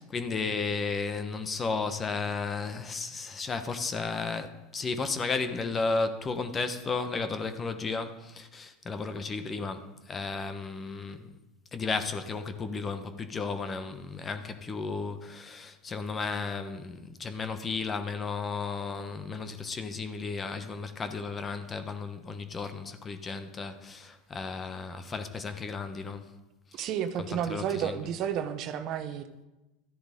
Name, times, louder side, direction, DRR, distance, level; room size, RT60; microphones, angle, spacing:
voice 1, 0.0-11.3 11.7-26.3 26.7-26.9 27.3-28.0, left 4 dB, 25° left, 1.1 m, -34 dB
voice 2, 26.7-29.5, right 9 dB, 50° right, 0.9 m, -32 dB
13.0 x 10.0 x 3.8 m
hypercardioid pair, 90°, 0 cm